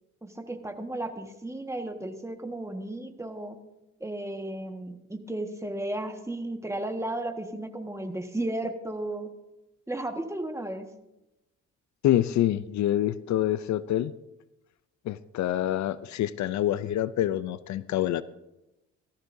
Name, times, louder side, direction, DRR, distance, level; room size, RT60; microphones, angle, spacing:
voice 1, 0.2-3.6 4.0-9.3 9.9-10.9, right 1 dB, 10° right, 5 dB, 1.5 m, -34 dB
voice 2, 12.0-14.1 15.1-18.2, left 12 dB, 70° left, 16 dB, 0.5 m, -26 dB
18.0 x 14.0 x 2.7 m, 0.94 s
cardioid pair, 90°, 30 cm